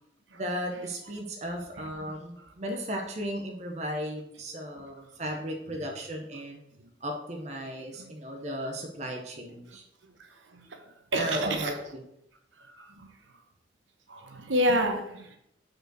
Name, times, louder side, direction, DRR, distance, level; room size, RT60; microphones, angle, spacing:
voice 1, 0.3-6.6 7.0-9.8 11.1-12.0, equal, 35° right, 2 dB, 0.8 m, -35 dB
voice 2, 11.1-11.7 12.7-13.1 14.1-15.4, equal, 75° right, 5 dB, 1.0 m, -29 dB
5.4 x 4.5 x 6.1 m, 0.78 s
head